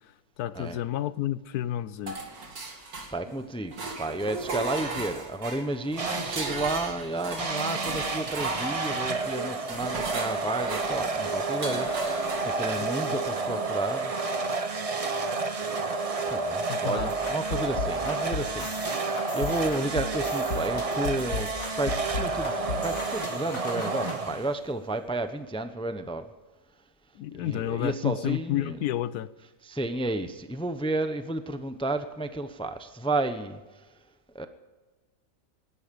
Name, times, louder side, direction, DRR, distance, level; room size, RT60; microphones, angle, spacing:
voice 1, 0.4-2.2 12.8-13.2 16.7-17.2 27.2-29.3, left 12 dB, 70° left, 16 dB, 1.1 m, -31 dB
sound 1, 2.1-3.4 3.7-13.1, right 3 dB, 55° right, 2.7 m, -37 dB
voice 2, 3.1-14.1 16.3-26.2 27.4-28.8 29.6-33.6 34.3-34.5, right 2 dB, 10° left, 9 dB, 0.3 m, -32 dB
sound 2, 6.0-6.6 7.4-24.7, right 3 dB, 30° right, 0.7 m, -30 dB
sound 3, 17.0-24.2, left 4 dB, 85° left, 3.1 m, -36 dB
20.0 x 11.5 x 5.3 m, 1.2 s
omnidirectional pair, 1.9 m